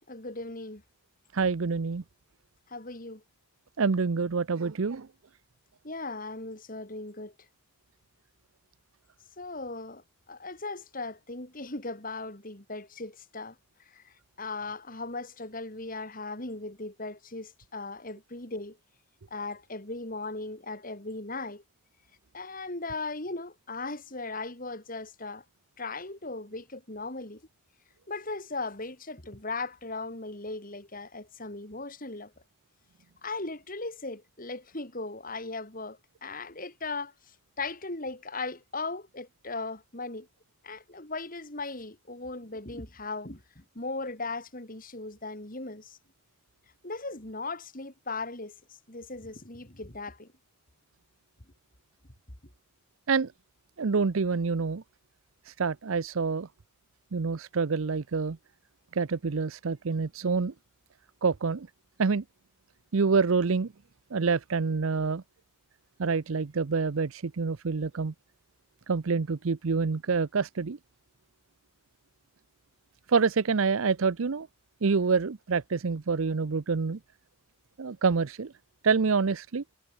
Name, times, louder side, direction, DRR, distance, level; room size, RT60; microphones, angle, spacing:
voice 1, 0.1-0.8 2.7-3.2 5.8-7.3 9.4-13.6 13.9-18.8 19.3-21.6 22.3-25.4 25.8-27.4 28.1-32.3 33.2-40.3 40.6-46.0 46.8-48.5 48.9-50.3, left 3 dB, 40° left, 3.6 m, -38 dB
voice 2, 1.3-2.0 3.8-5.1 53.1-53.3 53.8-54.8 55.5-56.5 57.1-58.4 58.9-60.5 61.2-61.7 62.0-62.2 62.9-63.7 64.1-65.2 66.0-68.1 68.9-70.8 73.1-74.5 74.8-77.0 77.8-78.5 78.8-79.6, right 5 dB, 75° right, 0.6 m, -27 dB
head